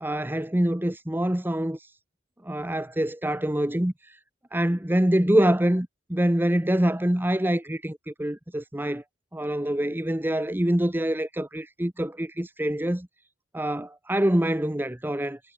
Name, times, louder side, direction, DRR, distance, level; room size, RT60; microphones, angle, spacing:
voice 1, 0.0-1.9 2.4-4.2 4.5-9.0 9.3-13.1 13.5-15.4, right 1 dB, 10° right, 1.0 m, -25 dB
head